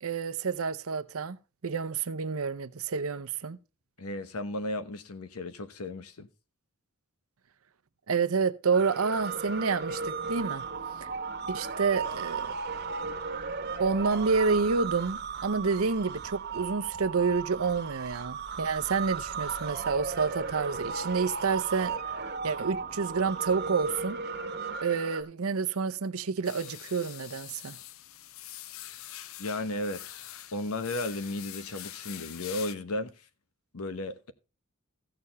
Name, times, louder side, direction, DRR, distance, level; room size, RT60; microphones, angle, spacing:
voice 1, 0.0-1.4 1.6-3.6 8.1-10.6 11.0-11.1 11.5-12.5 13.8-21.9 22.4-24.2 24.8-27.8, right 5 dB, 75° right, 0.7 m, -29 dB
voice 2, 4.0-6.3 29.4-30.2 30.5-33.1 33.7-34.3, left 2 dB, 85° left, 1.1 m, -34 dB
sound 1, 8.7-25.2, right 5 dB, 45° right, 1.2 m, -35 dB
sound 2, 26.4-32.8, left 13 dB, 65° left, 0.5 m, -44 dB
15.0 x 6.7 x 4.1 m
head